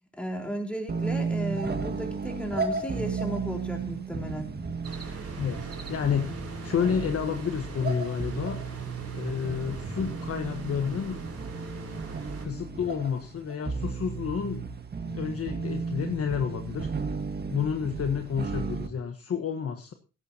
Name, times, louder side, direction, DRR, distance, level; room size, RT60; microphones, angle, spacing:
voice 1, 0.2-4.5, right 1 dB, 5° left, 2 dB, 4.3 m, -34 dB
sound 1, 0.9-18.9, right 4 dB, 35° right, 1.6 m, -34 dB
sound 2, 4.8-12.5, right 3 dB, 55° right, 5.2 m, -42 dB
voice 2, 5.3-8.6 9.1-11.2 12.4-14.6 15.1-16.9 17.5-19.9, left 7 dB, 50° left, 6 dB, 1.4 m, -30 dB
17.5 x 14.5 x 2.9 m, 0.33 s
cardioid pair, 135°, 30 cm